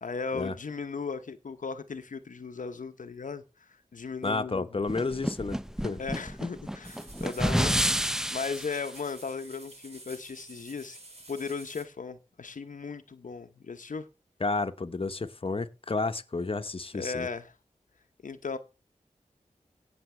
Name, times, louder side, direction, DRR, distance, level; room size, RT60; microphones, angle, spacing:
voice 1, 0.0-4.8 6.0-11.0 11.3-14.1 16.9-17.5 18.2-18.6, left 5 dB, 75° left, 0.9 m, -37 dB
voice 2, 4.2-6.0 14.4-17.3, left 3 dB, 45° left, 1.0 m, -31 dB
sound 1, 4.9-8.8, equal, 5° right, 0.7 m, -29 dB
sound 2, 6.8-11.8, right 2 dB, 50° right, 3.6 m, -50 dB
17.0 x 7.1 x 3.3 m
wide cardioid pair, 55°, 13 cm